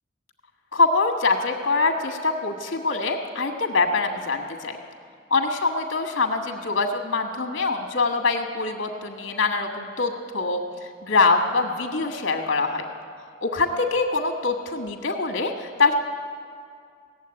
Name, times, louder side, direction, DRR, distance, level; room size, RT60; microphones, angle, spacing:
voice 1, 0.7-4.8 5.3-10.6 11.0-12.8 13.4-15.9, left 3 dB, 65° left, 3 dB, 1.3 m, -24 dB
17.0 x 7.4 x 9.7 m, 2.2 s
head